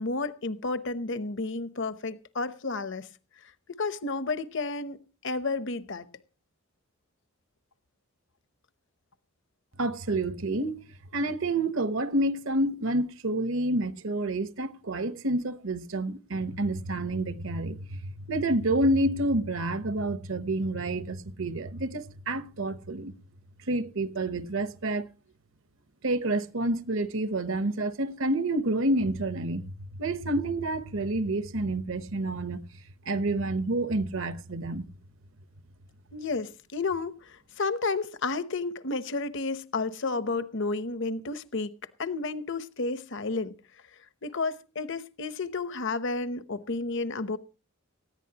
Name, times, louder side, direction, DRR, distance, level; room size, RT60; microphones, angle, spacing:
voice 1, 0.0-3.1 3.7-6.1 36.1-41.7 42.0-43.6 44.2-47.4, left 3 dB, 55° left, 0.9 m, -31 dB
voice 2, 9.8-10.7 11.1-23.1 23.7-25.0 26.0-32.6 33.1-34.9, right 1 dB, 65° right, 1.0 m, -28 dB
19.0 x 14.5 x 2.9 m
head